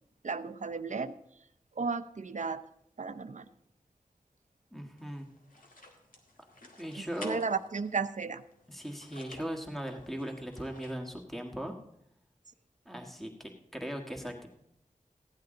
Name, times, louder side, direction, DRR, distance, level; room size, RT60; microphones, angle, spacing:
voice 1, 0.2-1.2 1.8-2.6 3.0-3.5 6.9-8.4, right 4 dB, 60° right, 10 dB, 0.7 m, -34 dB
voice 2, 4.7-5.3 6.8-7.4 8.7-11.7 12.8-14.5, equal, ahead, 3 dB, 1.6 m, -38 dB
sound 1, 5.0-10.9, left 2 dB, 85° left, 2.0 m, -53 dB
15.5 x 10.5 x 3.8 m, 0.76 s
wide cardioid pair, 75°, 14 cm